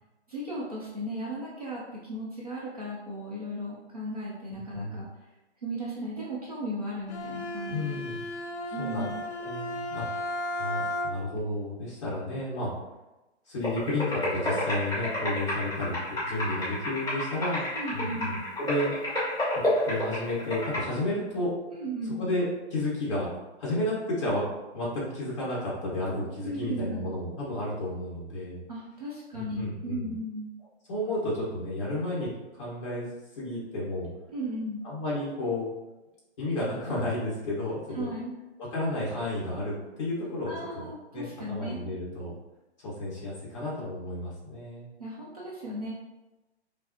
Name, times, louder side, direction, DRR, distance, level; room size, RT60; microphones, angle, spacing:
voice 1, 0.3-5.1 5.6-8.0 8.7-9.2 17.7-18.3 21.7-22.3 26.4-27.0 28.7-30.5 34.3-34.8 37.9-38.4 40.5-41.8 45.0-45.9, right 1 dB, 35° right, -6 dB, 0.6 m, -36 dB
voice 2, 4.7-5.0 7.7-8.2 8.8-9.1 9.4-10.3 10.6-12.7 13.5-17.7 17.9-18.9 19.5-21.5 22.2-23.3 23.6-24.4 24.7-28.6 29.3-30.1 30.9-34.1 34.8-35.7 36.4-38.1 38.6-40.9 41.1-42.3 42.8-44.9, left 1 dB, 25° left, -8 dB, 1.5 m, -32 dB
Bowed string instrument, 7.1-11.4, left 1 dB, 80° left, 0.7 m, -34 dB
sound 1, 13.6-20.8, left 1 dB, 5° left, 0.9 m, -31 dB
5.6 x 2.1 x 2.8 m, 1.0 s
hypercardioid pair, 175°, 34 cm